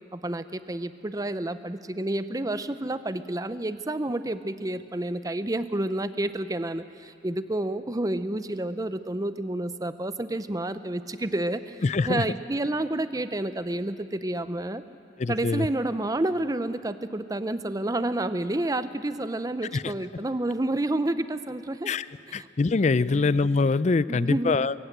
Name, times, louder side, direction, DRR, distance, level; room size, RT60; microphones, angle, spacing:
voice 1, 0.1-14.8 15.3-21.9 22.3-22.5 23.0-23.4 24.1-24.6, right 1 dB, 20° right, 12 dB, 0.6 m, -29 dB
voice 2, 11.8-12.2 15.2-15.7 19.7-19.9 21.9-22.1 22.3-24.7, left 3 dB, 40° left, 17 dB, 0.4 m, -24 dB
23.0 x 16.0 x 8.0 m, 2.4 s
head